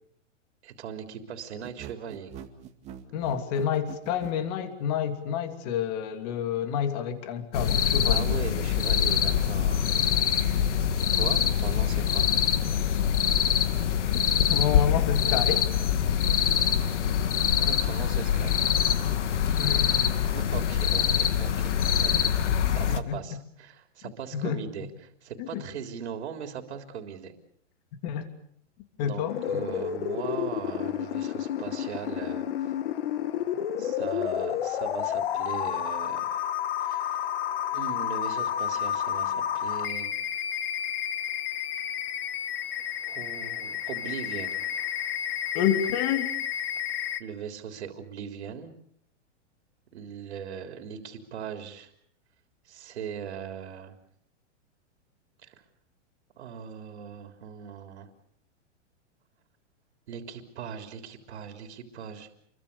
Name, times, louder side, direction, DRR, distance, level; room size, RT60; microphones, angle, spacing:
voice 1, 0.6-2.3 8.1-9.9 10.9-12.3 17.6-18.6 20.3-21.7 22.0-22.3 22.7-27.3 29.0-32.4 33.8-36.5 36.8-37.1 37.7-40.1 43.0-44.6 47.2-48.7 49.9-51.9 52.7-54.0 55.4-55.6 56.4-58.1 60.1-62.3, right 8 dB, 65° right, 6 dB, 3.7 m, -39 dB
sound 1, 1.6-4.4, right 9 dB, 20° right, 2.2 m, -43 dB
voice 2, 3.1-8.3 14.1-14.2 14.5-15.7 19.6-20.0 20.5-20.6 22.9-23.4 24.3-24.6 25.4-25.6 28.0-28.3 29.0-29.6 45.5-46.3, left 9 dB, 35° left, 8 dB, 2.9 m, -29 dB
sound 2, 7.5-23.0, left 9 dB, 70° left, 2.2 m, -24 dB
sound 3, 29.3-47.2, left 10 dB, 50° left, 1.9 m, -31 dB
29.0 x 23.0 x 6.9 m, 0.65 s
supercardioid pair, 170°, 36 cm